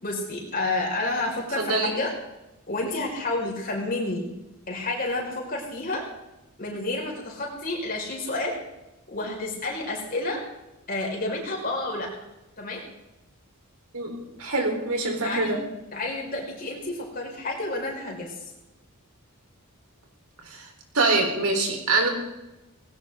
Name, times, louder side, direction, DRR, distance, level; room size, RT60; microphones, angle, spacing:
voice 1, 0.0-2.1 2.7-4.3 4.7-6.1 6.6-8.6 9.1-10.4 10.9-12.1 12.6-12.8 15.2-15.6 15.9-18.5, left 2 dB, 40° left, -1 dB, 5.3 m, -30 dB
voice 2, 1.6-1.9 13.9-14.1 14.4-15.6 20.5-20.6 20.9-22.1, right 3 dB, 80° right, 2 dB, 4.2 m, -24 dB
19.5 x 17.5 x 3.8 m, 0.97 s
head